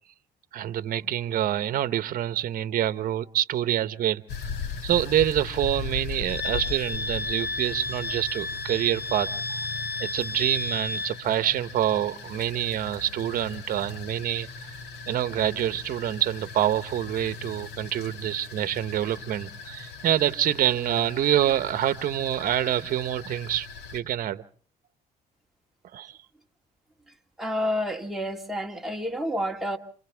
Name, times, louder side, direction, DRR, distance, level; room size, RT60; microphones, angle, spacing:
voice 1, 0.5-4.2 4.8-9.3 9.6-9.7 10.0-14.7 15.1-23.7 23.9-24.4 25.9-26.2, right 11 dB, 55° right, 1.0 m, -26 dB
sound 1, 4.3-24.0, left 5 dB, 80° left, 2.3 m, -39 dB
Wind instrument woodwind instrument, 6.3-11.2, left 2 dB, 65° left, 2.0 m, -32 dB
voice 2, 27.4-29.8, equal, ahead, 2.1 m, -29 dB
27.5 x 27.0 x 3.5 m
cardioid pair, 110°, 17 cm